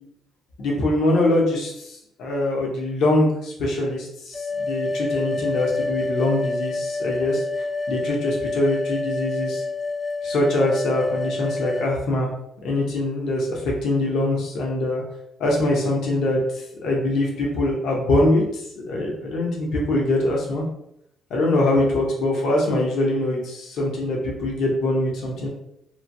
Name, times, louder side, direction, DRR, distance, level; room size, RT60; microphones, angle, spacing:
voice 1, 0.6-7.4 7.9-9.6 10.2-12.3 12.6-15.0 15.4-20.6 21.3-25.5, left 1 dB, 75° left, -1 dB, 0.8 m, -23 dB
sound 1, 4.3-11.9, left 3 dB, 25° left, 0.4 m, -28 dB
3.0 x 2.1 x 2.6 m, 0.78 s
cardioid pair, 90°, 0 cm